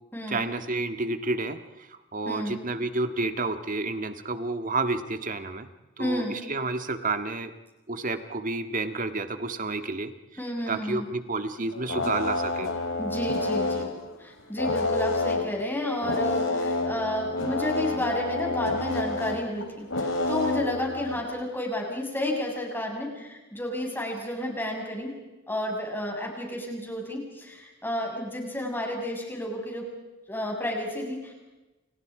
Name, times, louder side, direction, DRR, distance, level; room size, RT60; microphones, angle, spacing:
voice 1, 0.3-5.7 6.0-7.5 7.9-10.1 10.7-12.7, right 3 dB, 40° right, 8 dB, 1.8 m, -30 dB
voice 2, 2.2-2.6 6.0-6.3 10.4-11.1 13.0-13.9 14.2-25.1 25.5-29.8 30.3-31.3, left 1 dB, 10° left, 0 dB, 6.6 m, -31 dB
sound 1, 11.6-13.9 14.6-15.6 16.0-21.2, left 2 dB, 75° left, 3.3 m, -28 dB
30.0 x 29.0 x 5.0 m, 1.1 s
head